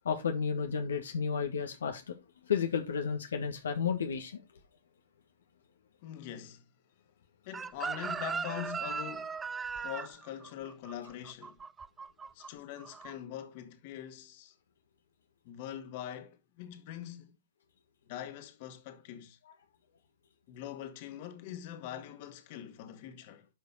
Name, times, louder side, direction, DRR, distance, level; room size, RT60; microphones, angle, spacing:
voice 1, 0.0-2.1 2.5-4.4, left 6 dB, 80° left, 1.6 m, -32 dB
voice 2, 6.0-6.6 7.4-9.4 9.7-11.6 12.3-14.5 15.4-17.4 18.1-19.4 20.5-23.5, left 10 dB, 50° left, 2.1 m, -43 dB
Chicken rooster, 7.5-12.5 12.8-13.1, right 5 dB, 15° right, 0.4 m, -38 dB
11.0 x 5.3 x 4.1 m
hypercardioid pair, 120°, 0 cm